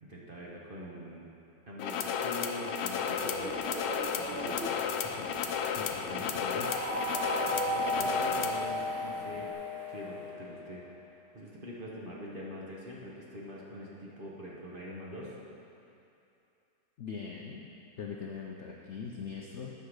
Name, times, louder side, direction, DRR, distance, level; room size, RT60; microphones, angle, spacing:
voice 1, 0.0-1.3 1.7-3.5 4.1-6.7 7.4-9.5 9.9-10.8 11.1-15.3, equal, 35° right, -4 dB, 1.1 m, -44 dB
sound 1, 1.8-8.7, left 7 dB, 80° left, 1.2 m, -33 dB
Fixed-wing aircraft airplane, 3.1-9.5, equal, 5° left, 0.5 m, -44 dB
voice 2, 5.7-6.6 7.9-8.4 17.0-17.7 18.0-19.7, left 6 dB, 60° left, -1 dB, 0.7 m, -42 dB
sound 2, 6.6-10.9, equal, 70° right, 2.1 m, -34 dB
9.2 x 5.7 x 6.5 m, 2.7 s
omnidirectional pair, 1.9 m